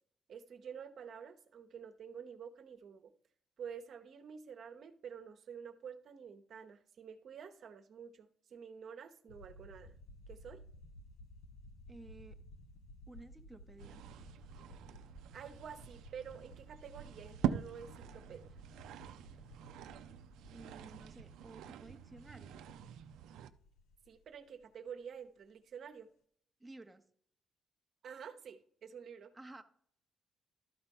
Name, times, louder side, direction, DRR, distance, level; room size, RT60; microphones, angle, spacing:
voice 1, 0.3-3.1 3.6-9.9 10.3-10.6 15.3-18.4 24.1-26.1 28.0-29.3, right 7 dB, 60° right, 8 dB, 0.9 m, -49 dB
sound 1, 9.3-24.9, left 1 dB, 90° left, 0.8 m, -57 dB
voice 2, 11.9-12.4 13.1-14.0 20.5-22.7 26.6-27.0 29.3-29.6, right 2 dB, 10° right, 5 dB, 0.8 m, -54 dB
sound 2, 13.8-23.5, right 10 dB, 85° right, 0.5 m, -44 dB
12.5 x 4.3 x 5.4 m, 0.62 s
cardioid pair, 90°, 0 cm